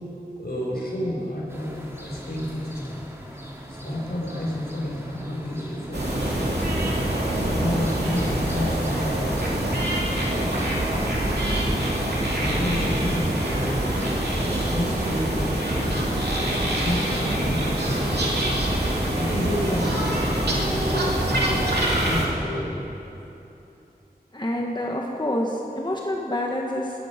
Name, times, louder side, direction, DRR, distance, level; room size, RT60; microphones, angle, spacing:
voice 1, 0.4-3.0 3.7-6.5 7.5-9.5 12.0-13.7 14.6-16.1 16.6-18.4 19.1-19.9 20.2-22.8, left 1 dB, 75° left, -4 dB, 4.9 m, -31 dB
sound 1, 1.5-19.1, equal, 15° right, 2.9 m, -39 dB
sound 2, 5.9-22.3, right 1 dB, 90° right, 2.7 m, -25 dB
voice 2, 24.3-26.9, left 1 dB, 25° left, -1 dB, 1.5 m, -27 dB
19.5 x 14.0 x 5.2 m, 2.9 s
wide cardioid pair, 45°, 16 cm